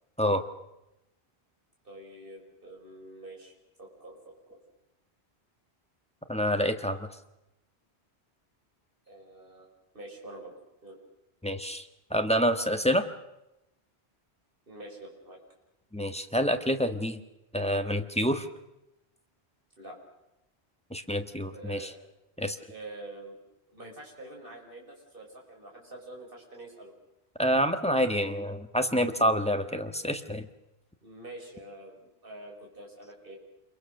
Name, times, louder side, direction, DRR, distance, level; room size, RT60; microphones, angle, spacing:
voice 1, 1.8-4.3 9.1-9.7 9.9-10.5 10.8-11.0 14.7-15.4 19.8-20.0 21.5-22.0 22.7-23.4 23.7-26.9 31.0-33.4, right 1 dB, 55° right, 0 dB, 5.8 m, -46 dB
voice 2, 6.3-7.1 11.4-13.0 15.9-17.2 17.5-18.5 20.9-21.9 22.4-22.6 27.4-30.5, equal, 5° left, 7 dB, 1.4 m, -27 dB
28.0 x 22.5 x 6.6 m, 0.92 s
omnidirectional pair, 1.1 m